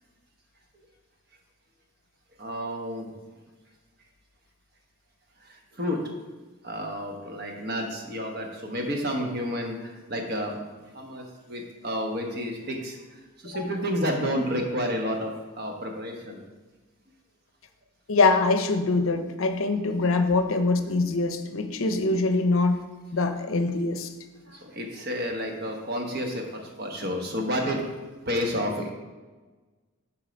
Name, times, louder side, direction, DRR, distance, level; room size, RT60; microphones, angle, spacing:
voice 1, 2.4-3.1 5.8-6.0 6.6-10.6 10.9-13.0 13.4-16.4 24.5-27.8 28.3-28.9, equal, 50° right, 2 dB, 1.1 m, -30 dB
voice 2, 18.1-22.8 23.1-24.1, left 3 dB, 70° left, 8 dB, 0.6 m, -24 dB
7.6 x 4.5 x 5.2 m, 1.3 s
head